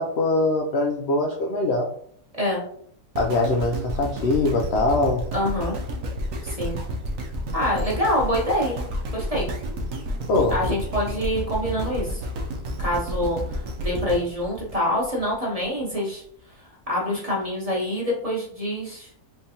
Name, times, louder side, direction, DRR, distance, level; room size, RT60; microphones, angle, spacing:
voice 1, 0.0-1.9 3.2-5.3 10.3-10.6, left 2 dB, 90° left, 0 dB, 0.5 m, -22 dB
sound 1, 3.2-15.4 15.9-16.0, equal, 65° right, 0.9 m, -31 dB
voice 2, 5.3-5.8 6.4-6.8 7.5-8.8 9.1-9.5 10.5-12.2 12.8-16.2 16.9-19.2, equal, 30° right, -4 dB, 0.7 m, -26 dB
3.7 x 3.4 x 2.8 m, 0.63 s
omnidirectional pair, 1.7 m